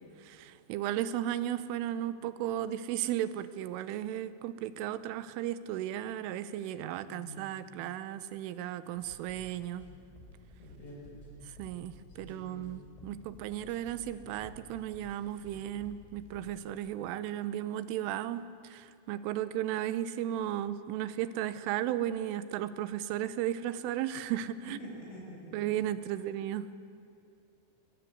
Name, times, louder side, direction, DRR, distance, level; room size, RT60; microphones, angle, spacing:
voice 1, 0.0-9.9 11.5-24.8 25.5-26.7, right 11 dB, 90° right, 14 dB, 3.4 m, -35 dB
voice 2, 7.1-7.5 10.6-11.1 12.2-12.7 24.8-25.6, equal, 80° left, -3 dB, 9.8 m, -47 dB
sound 1, 9.0-16.6, left 1 dB, 5° left, 4.7 m, -54 dB
22.5 x 22.5 x 9.6 m, 2.4 s
omnidirectional pair, 5.5 m